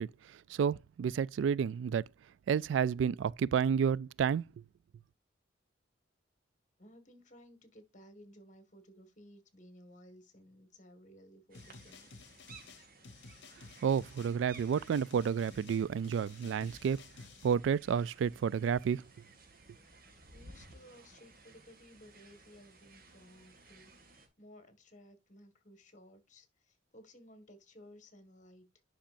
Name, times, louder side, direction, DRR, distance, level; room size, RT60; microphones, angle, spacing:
voice 1, 0.0-2.1 2.5-4.5 13.8-17.0 17.4-19.0, right 7 dB, 70° right, 0.3 m, -30 dB
voice 2, 6.8-12.1 20.3-23.9 24.4-28.8, equal, 40° left, 1.8 m, -57 dB
sound 1, 11.5-17.5, left 4 dB, 65° left, 1.0 m, -54 dB
sound 2, 11.5-24.3, right 3 dB, 50° right, 2.1 m, -58 dB
10.0 x 5.7 x 2.5 m
head